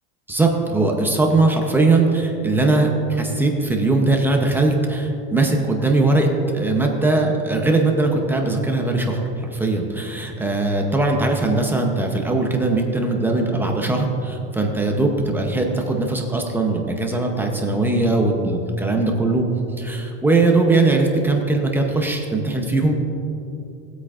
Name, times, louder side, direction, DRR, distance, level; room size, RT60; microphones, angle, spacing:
voice 1, 0.3-6.3 6.5-19.4 19.8-23.0, right 2 dB, 5° right, 1 dB, 0.7 m, -20 dB
18.0 x 8.3 x 2.5 m, 2.7 s
supercardioid pair, 155°, 32 cm